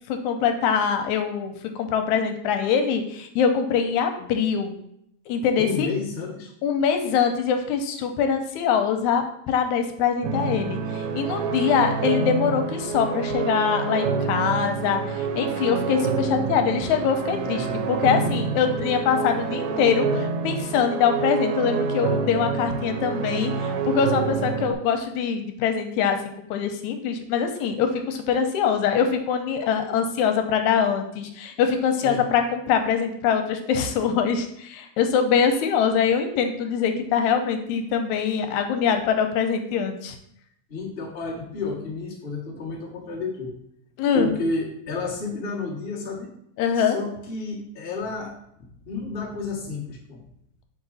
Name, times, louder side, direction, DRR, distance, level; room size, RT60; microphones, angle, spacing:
voice 1, 0.1-4.8 5.3-5.9 6.6-26.2 26.5-40.2 44.0-44.4 46.6-47.0, left 7 dB, 85° left, 5 dB, 2.1 m, -23 dB
voice 2, 5.6-6.5 17.4-17.8 32.0-32.2 40.7-43.5 44.1-46.3 46.7-48.3 48.8-50.2, left 3 dB, 35° left, -5 dB, 0.9 m, -31 dB
sound 1, 10.2-24.7, right 5 dB, 80° right, 2.0 m, -27 dB
5.9 x 4.2 x 4.0 m, 0.73 s
omnidirectional pair, 3.3 m